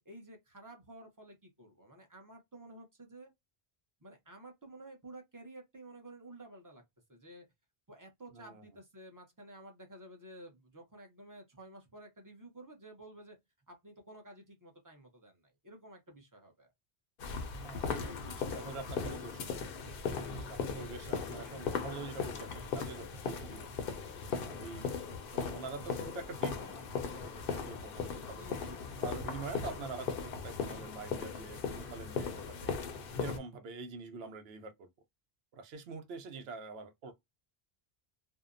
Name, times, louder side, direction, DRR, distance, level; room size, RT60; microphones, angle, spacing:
voice 1, 0.0-3.3 4.0-6.8 7.1-7.5 7.9-13.4 13.7-16.7 28.3-29.0, right 1 dB, 20° right, 0.6 m, -52 dB
voice 2, 8.3-8.6 17.6-19.6 20.1-23.7 24.3-24.9 25.3-28.7 29.0-32.9 33.2-34.9 35.5-37.1, right 4 dB, 75° right, 0.8 m, -45 dB
sound 1, 17.2-33.4, left 5 dB, 65° left, 0.7 m, -38 dB
2.7 x 2.0 x 2.4 m
omnidirectional pair, 1.1 m